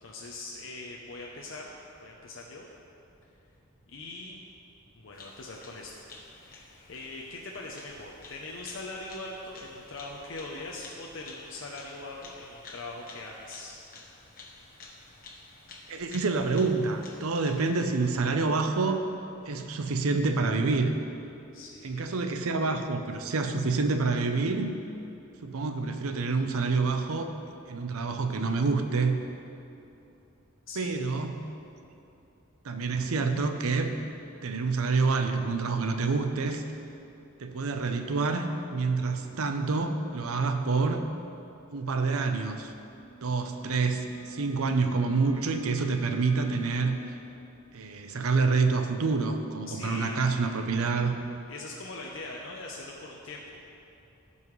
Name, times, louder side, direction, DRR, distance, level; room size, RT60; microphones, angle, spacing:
voice 1, 0.0-1.7 2.0-2.7 3.9-4.4 4.9-6.1 6.4-13.8 21.5-22.1 30.7-31.0 49.7-50.3 51.5-53.6, left 2 dB, 65° left, -2 dB, 0.7 m, -41 dB
Bird vocalization bird call bird song, 5.1-18.4, left 3 dB, 40° left, 1.0 m, -51 dB
voice 2, 15.9-19.1 19.5-21.0 21.8-24.7 25.4-27.3 27.7-29.2 30.8-31.5 32.6-33.9 34.4-36.6 37.4-41.1 41.7-42.7 43.2-46.9 47.7-51.1, right 4 dB, 80° right, 6 dB, 0.6 m, -27 dB
sound 1, 42.5-46.9, right 2 dB, 20° right, 1.7 m, -42 dB
15.5 x 5.5 x 3.2 m, 2.8 s
head